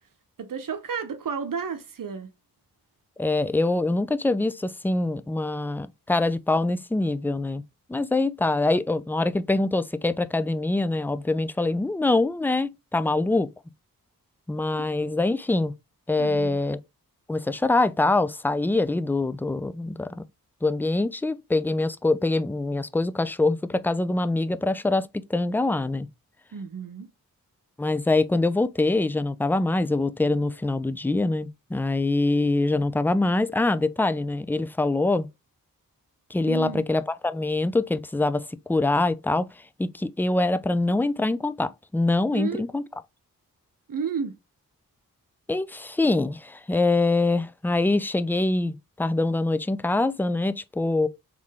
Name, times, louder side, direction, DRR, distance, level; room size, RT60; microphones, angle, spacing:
voice 1, 0.4-2.3 14.7-14.8 16.2-16.6 26.5-27.1 36.5-36.9 42.3-42.7 43.9-44.4, right 6 dB, 60° right, 0.8 m, -32 dB
voice 2, 3.2-7.6 7.9-13.5 14.5-15.7 16.1-16.8 17.3-20.2 20.6-26.1 27.8-35.3 36.3-39.5 39.8-42.8 45.5-51.1, left 2 dB, 5° left, 0.3 m, -24 dB
3.6 x 3.2 x 3.5 m
cardioid pair, 45°, 36 cm